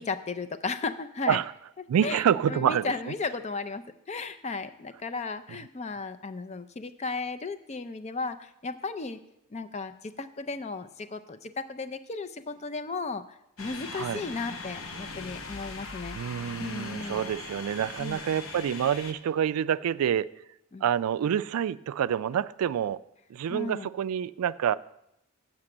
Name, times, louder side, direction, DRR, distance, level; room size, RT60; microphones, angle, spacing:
voice 1, 0.0-1.4 2.0-9.2 9.5-16.2 16.6-17.3 18.0-18.2 20.7-20.9 23.5-23.9, left 4 dB, 30° left, 11 dB, 0.4 m, -35 dB
voice 2, 1.9-2.9 13.9-14.2 16.1-20.3 20.8-23.0 23.3-24.7, right 9 dB, 80° right, 17 dB, 0.3 m, -27 dB
sound 1, 13.6-19.1, left 3 dB, 65° left, 1.0 m, -40 dB
7.3 x 5.9 x 7.7 m, 0.81 s
head